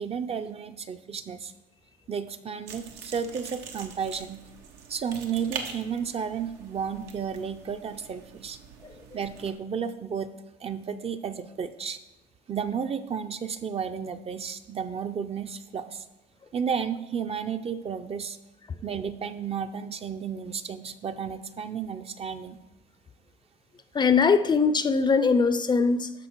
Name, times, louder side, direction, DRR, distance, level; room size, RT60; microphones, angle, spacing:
voice 1, 0.0-1.5 2.1-4.4 4.9-8.6 9.1-10.3 10.6-12.0 12.5-16.1 16.5-18.4 18.8-22.6, right 7 dB, 35° right, 9 dB, 0.6 m, -32 dB
sound 1, 2.7-9.5, right 6 dB, 90° right, 1.2 m, -43 dB
voice 2, 23.9-26.1, left 5 dB, 25° left, 12 dB, 0.5 m, -21 dB
13.0 x 4.9 x 4.6 m, 1.0 s
cardioid pair, 110°, 17 cm